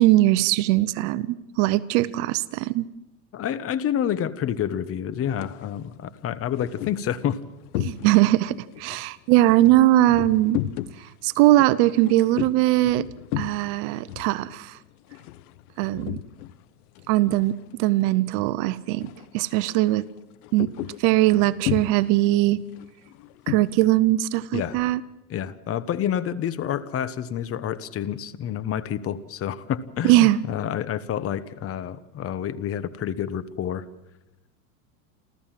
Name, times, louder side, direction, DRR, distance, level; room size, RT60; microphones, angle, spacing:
voice 1, 0.0-2.9 7.8-10.6 11.2-13.0 13.4-14.8 15.8-16.2 17.1-20.0 20.5-20.7 21.0-22.6 23.5-25.0 30.0-30.4, right 16 dB, 55° right, 17 dB, 0.9 m, -20 dB
voice 2, 3.3-7.4 24.5-24.8 25.3-33.8, left 9 dB, 30° left, 15 dB, 1.2 m, -28 dB
sound 1, 5.3-5.6 6.2-8.4 8.7-16.6 16.9-18.0 18.3-18.6 18.9-19.3 19.6-23.9, left 14 dB, 75° left, 1.1 m, -34 dB
29.0 x 14.0 x 7.6 m, 0.92 s
supercardioid pair, 125°, 45 cm